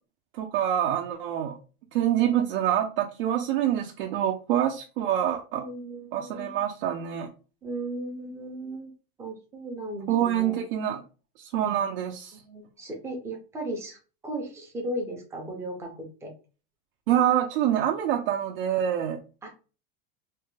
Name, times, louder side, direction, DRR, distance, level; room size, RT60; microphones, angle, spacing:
voice 1, 0.3-1.6 1.9-5.7 6.1-7.3 10.1-11.0 11.4-12.4 17.1-19.2, right 10 dB, 65° right, 2 dB, 0.5 m, -26 dB
voice 2, 5.5-6.6 7.6-8.9 9.2-10.6 11.7-12.0 12.3-14.0 14.2-16.3 19.4-19.5, right 1 dB, 10° right, 2 dB, 0.4 m, -36 dB
3.3 x 2.2 x 3.1 m, 0.34 s
supercardioid pair, 170°, 30 cm